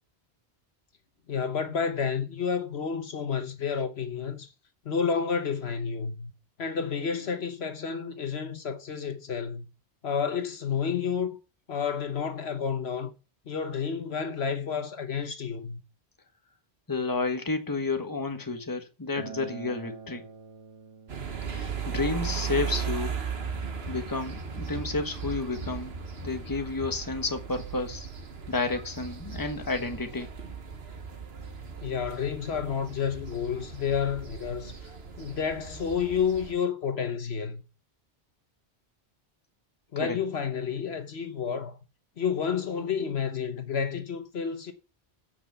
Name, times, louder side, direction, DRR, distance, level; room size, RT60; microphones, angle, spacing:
voice 1, 1.3-4.5 4.8-6.3 6.6-9.6 10.0-11.4 11.7-13.1 13.5-15.8 31.8-34.9 35.2-37.6 39.9-41.8 42.2-44.7, left 6 dB, 70° left, 1.3 m, -30 dB
voice 2, 16.9-20.2 21.4-23.2 23.9-25.9 26.2-28.1 28.5-30.3 40.0-40.2, left 3 dB, 20° left, 1.2 m, -31 dB
Acoustic guitar, 19.2-24.4, right 6 dB, 30° right, 1.5 m, -47 dB
sound 1, 21.1-36.5, right 6 dB, 70° right, 1.5 m, -37 dB
8.2 x 6.1 x 6.9 m
omnidirectional pair, 1.1 m